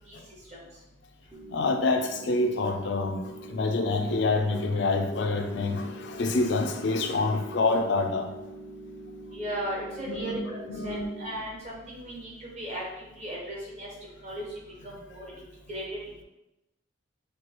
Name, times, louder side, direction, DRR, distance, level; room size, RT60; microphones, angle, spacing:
sound 1, 1.3-11.3, right 2 dB, 15° right, 0.7 m, -44 dB
voice 1, 1.5-8.3 10.1-10.4 10.7-11.1 14.9-15.0, left 3 dB, 55° left, 5 dB, 0.4 m, -27 dB
voice 2, 9.3-12.8 13.2-13.9 14.2-14.4 14.8-15.8, equal, 35° right, -4 dB, 1.2 m, -36 dB
4.5 x 2.3 x 4.6 m, 0.95 s
head